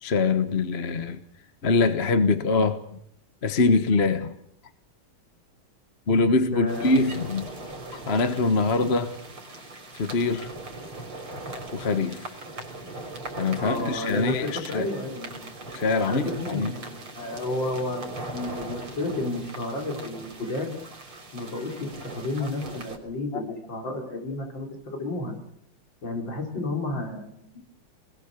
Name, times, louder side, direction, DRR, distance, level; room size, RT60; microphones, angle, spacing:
voice 1, 0.0-1.2 1.6-2.8 3.4-4.3 6.1-7.5 7.9-9.1 9.9-10.5 11.7-12.3 13.4-14.9 15.7-16.7, left 3 dB, 35° left, 1.3 m, -23 dB
voice 2, 6.4-7.2 13.6-15.5 16.1-20.7 21.3-25.3 26.0-27.6, left 2 dB, 60° left, 5.5 m, -32 dB
sound 1, 6.7-23.0, right 2 dB, 80° right, 4.5 m, -39 dB
28.0 x 21.0 x 6.8 m
omnidirectional pair, 2.3 m